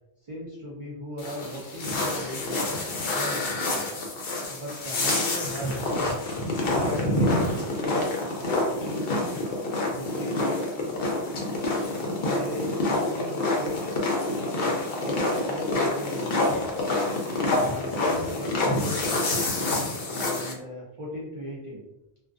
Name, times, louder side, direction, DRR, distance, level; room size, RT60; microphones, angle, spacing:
voice 1, 0.3-2.8 3.1-3.9 4.5-6.1 6.8-8.1 8.4-9.3 10.0-10.7 12.2-13.9 15.0-16.7 17.6-19.3 20.1-21.8, left 1 dB, 45° right, -6 dB, 0.4 m, -37 dB
sound 1, 1.2-20.5, left 2 dB, 65° left, 0.8 m, -27 dB
2.4 x 2.2 x 2.3 m, 0.91 s
omnidirectional pair, 1.1 m